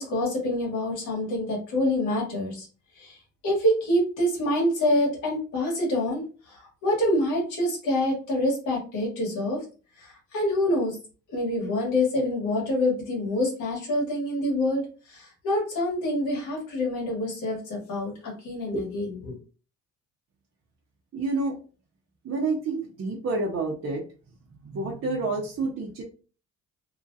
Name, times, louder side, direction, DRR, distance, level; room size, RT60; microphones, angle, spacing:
voice 1, 0.0-2.7 2.9-3.2 3.4-9.6 10.0-11.0 11.3-19.4, left 1 dB, 85° left, -2 dB, 1.4 m, -26 dB
voice 2, 21.1-21.6 22.2-24.0 24.6-26.0, right 3 dB, 50° right, -3 dB, 0.8 m, -28 dB
2.9 x 2.5 x 2.6 m, 0.37 s
cardioid pair, 90°, 30 cm